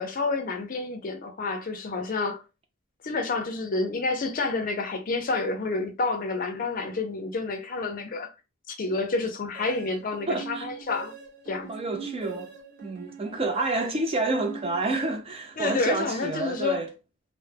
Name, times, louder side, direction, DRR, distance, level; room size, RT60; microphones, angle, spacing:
voice 1, 0.0-2.4 3.0-8.3 8.7-11.1 11.5-11.7 15.6-16.8, left 3 dB, 40° left, 0.5 m, -29 dB
sound 1, 9.5-15.4, right 6 dB, 55° right, 0.7 m, -42 dB
voice 2, 10.3-10.7 11.7-12.5 12.8-16.9, right 2 dB, 25° right, 0.4 m, -29 dB
2.2 x 2.0 x 3.2 m
head